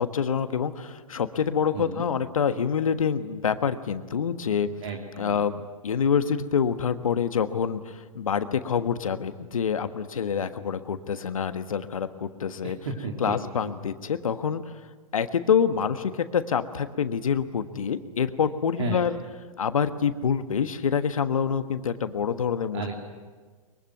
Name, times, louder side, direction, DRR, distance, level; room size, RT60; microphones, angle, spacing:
voice 1, 0.0-4.7 5.2-12.8 13.2-14.6 15.1-19.2 19.6-22.8, left 7 dB, 70° left, 10 dB, 1.4 m, -26 dB
voice 2, 1.7-2.1 4.8-5.4 12.6-13.4 13.6-13.7 18.8-19.1 22.7-22.9, right 4 dB, 55° right, 1 dB, 3.2 m, -33 dB
23.0 x 22.5 x 9.4 m, 1.5 s
figure-of-eight pair, 110°, 18 cm